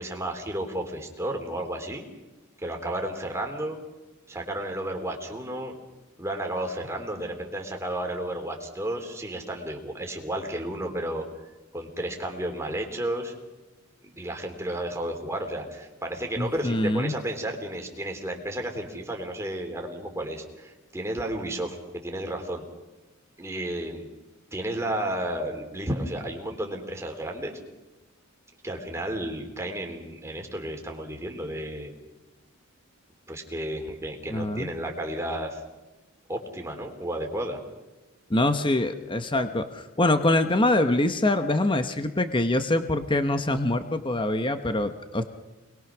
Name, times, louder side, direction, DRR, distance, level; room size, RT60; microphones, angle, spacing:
voice 1, 0.0-2.0 2.6-3.8 4.3-5.8 6.2-11.3 11.7-13.3 14.0-22.6 23.4-24.1 24.5-27.6 28.6-31.9 33.3-35.6 36.3-37.6, right 1 dB, 15° right, 2 dB, 3.5 m, -32 dB
voice 2, 16.4-17.1 34.3-34.7 38.3-45.2, left 1 dB, 25° left, 8 dB, 1.1 m, -24 dB
27.5 x 21.5 x 6.2 m, 1.1 s
head